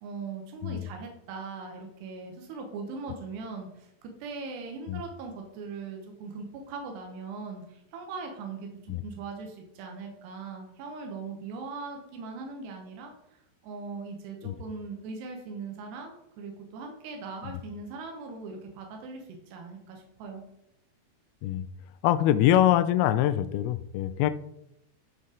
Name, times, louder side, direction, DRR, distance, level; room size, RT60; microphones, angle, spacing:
voice 1, 0.0-13.1 13.6-20.5, right 4 dB, 90° right, 2 dB, 3.2 m, -40 dB
voice 2, 22.0-24.3, left 12 dB, 80° left, 12 dB, 2.3 m, -24 dB
11.5 x 4.1 x 3.8 m, 0.80 s
omnidirectional pair, 4.7 m